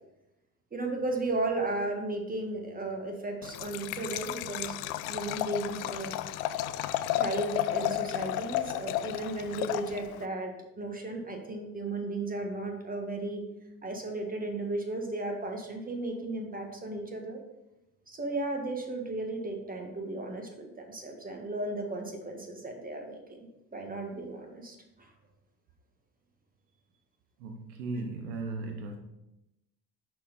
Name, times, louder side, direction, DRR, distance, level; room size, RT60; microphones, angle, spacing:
voice 1, 0.7-4.8 5.1-6.1 7.1-13.4 13.8-17.4 18.1-23.4 23.7-25.1, right 2 dB, 20° right, 3 dB, 1.6 m, -35 dB
Liquid, 3.4-10.3, left 13 dB, 75° left, 0.5 m, -33 dB
voice 2, 27.4-29.0, right 3 dB, 80° right, 4 dB, 0.9 m, -36 dB
5.9 x 4.3 x 5.1 m, 0.92 s
hypercardioid pair, 75°, 44 cm